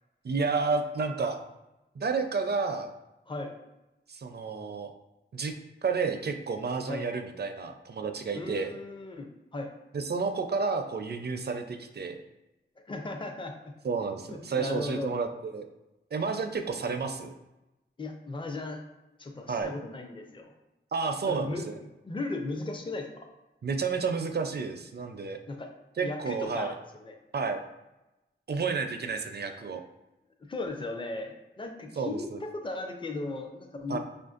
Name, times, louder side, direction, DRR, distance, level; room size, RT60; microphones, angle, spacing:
voice 1, 0.2-1.4 2.0-2.9 4.1-4.9 5.3-5.6 5.8-8.7 9.9-12.2 13.8-15.7 16.1-17.3 19.5-19.7 20.9-21.8 23.6-25.4 26.0-26.7 27.3-27.6 28.5-29.8 32.0-32.4 33.9-34.0, right 4 dB, 50° right, 6 dB, 0.5 m, -31 dB
voice 2, 8.3-9.7 12.9-13.5 14.3-15.1 18.0-18.8 19.2-20.5 21.2-21.6 22.0-23.3 25.5-25.7 26.0-26.8 27.0-27.1 30.5-34.0, left 2 dB, 25° left, 3 dB, 0.5 m, -36 dB
4.9 x 2.5 x 2.5 m, 0.99 s
cardioid pair, 50°, 21 cm